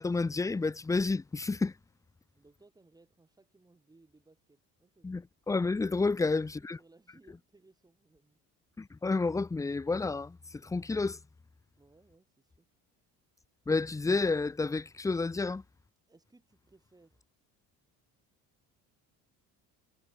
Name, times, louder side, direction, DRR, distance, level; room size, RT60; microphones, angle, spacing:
voice 1, 0.0-1.7 5.0-6.8 8.8-10.4 10.6-11.2 13.7-15.6, left 3 dB, 10° left, 0.6 m, -30 dB
voice 2, 2.3-5.1 6.1-8.4 11.8-12.7 16.1-17.2, right 2 dB, 10° right, 7.7 m, -63 dB
cardioid pair, 145°, 34 cm